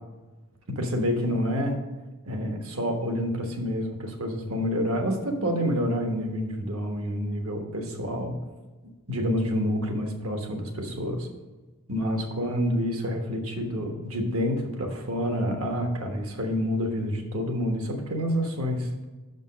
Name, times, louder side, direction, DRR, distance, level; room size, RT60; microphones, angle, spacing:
voice 1, 0.7-1.8 2.2-8.3 9.1-11.3 11.9-19.0, equal, 75° right, 3 dB, 1.3 m, -28 dB
6.4 x 5.3 x 6.1 m, 1.2 s
head